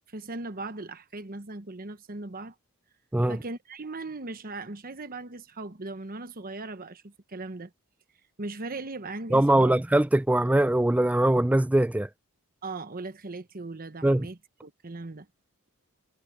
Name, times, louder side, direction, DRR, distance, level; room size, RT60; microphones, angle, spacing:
voice 1, 0.1-2.5 3.3-7.7 8.4-9.7 12.6-15.3, right 3 dB, 40° right, 1.1 m, -38 dB
voice 2, 9.3-12.1 14.0-14.3, right 1 dB, 5° right, 0.3 m, -22 dB
head